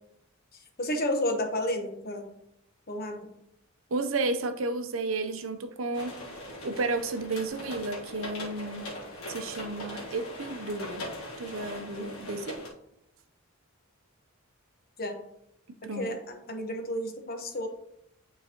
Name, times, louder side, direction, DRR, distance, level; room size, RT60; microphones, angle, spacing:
voice 1, 0.8-2.2 2.9-3.2 15.0-15.1 15.9-17.7, left 1 dB, 45° left, 4 dB, 1.0 m, -31 dB
voice 2, 3.9-8.9 9.3-11.1 11.4-12.6 15.7-16.1, right 3 dB, 70° right, 8 dB, 0.6 m, -32 dB
sound 1, 5.9-12.7, left 1 dB, 80° left, 1.7 m, -40 dB
9.3 x 3.9 x 2.9 m, 0.77 s
head